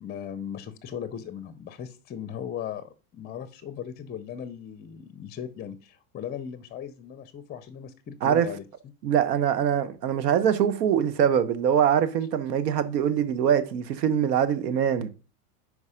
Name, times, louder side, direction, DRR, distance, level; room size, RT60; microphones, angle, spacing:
voice 1, 0.0-8.6, left 8 dB, 20° left, 0.5 m, -38 dB
voice 2, 9.0-15.1, right 9 dB, 90° right, 1.0 m, -23 dB
5.4 x 4.8 x 4.9 m
supercardioid pair, 110°, 48 cm